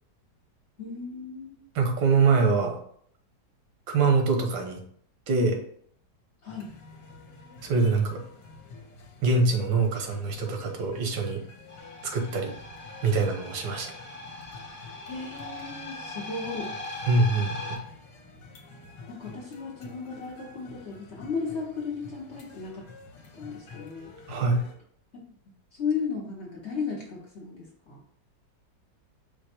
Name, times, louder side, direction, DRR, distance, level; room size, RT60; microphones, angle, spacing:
voice 1, 0.8-1.6 6.4-6.7 15.1-16.7 19.1-22.8 23.3-24.1 25.1-25.3 25.7-28.0, left 5 dB, 50° left, -2 dB, 0.8 m, -35 dB
voice 2, 1.7-2.8 3.9-4.8 5.3-5.6 7.6-8.2 9.2-11.4 12.0-12.5 13.0-13.9 17.1-17.8 24.3-24.7, right 4 dB, 90° right, 3 dB, 1.6 m, -24 dB
sound 1, 6.5-24.7, left 3 dB, 70° left, 1.4 m, -49 dB
sound 2, 11.7-17.8, left 2 dB, 25° left, 1.2 m, -40 dB
5.0 x 2.2 x 4.2 m, 0.63 s
omnidirectional pair, 1.9 m